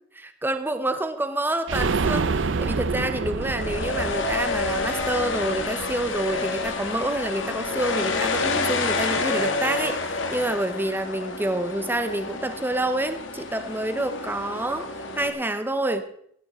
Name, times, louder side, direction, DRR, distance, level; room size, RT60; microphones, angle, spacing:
voice 1, 0.1-10.0 10.3-14.9 15.1-16.0, right 1 dB, 10° right, 9 dB, 0.8 m, -27 dB
sound 1, 1.7-7.3 7.6-7.7 8.0-8.1, right 4 dB, 65° right, 0.6 m, -28 dB
sound 2, 3.4-15.3, left 3 dB, 70° left, 1.6 m, -29 dB
15.5 x 9.5 x 4.3 m, 0.68 s
head